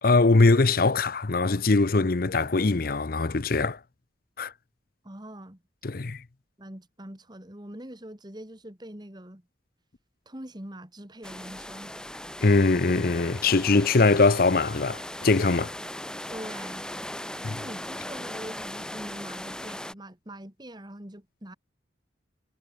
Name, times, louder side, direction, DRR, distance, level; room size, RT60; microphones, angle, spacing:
voice 1, 0.0-3.8 4.4-4.5 5.8-6.2 12.4-15.7 17.4-17.6, left 3 dB, 50° left, 0.7 m, -22 dB
voice 2, 5.0-5.6 6.6-9.4 10.3-11.9 16.3-16.9 17.4-21.5, right 1 dB, 25° right, 2.4 m, -43 dB
sound 1, 11.2-19.9, left 1 dB, 5° left, 3.0 m, -38 dB
head